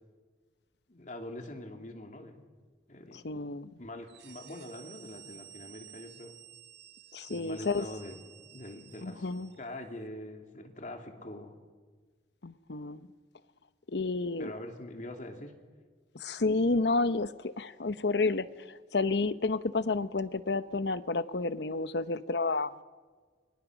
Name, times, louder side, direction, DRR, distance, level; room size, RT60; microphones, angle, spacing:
voice 1, 0.9-2.4 2.9-3.2 3.8-6.3 7.3-8.2 8.5-9.3 9.6-11.6 14.4-15.5, left 1 dB, 45° left, 4 dB, 2.9 m, -44 dB
voice 2, 3.1-3.7 7.1-7.9 9.0-9.5 12.4-13.1 13.9-14.5 16.1-22.7, left 3 dB, 70° left, 14 dB, 0.9 m, -30 dB
sound 1, 4.0-9.7, right 11 dB, 70° right, 1.6 m, -53 dB
29.5 x 23.5 x 6.3 m, 1.5 s
head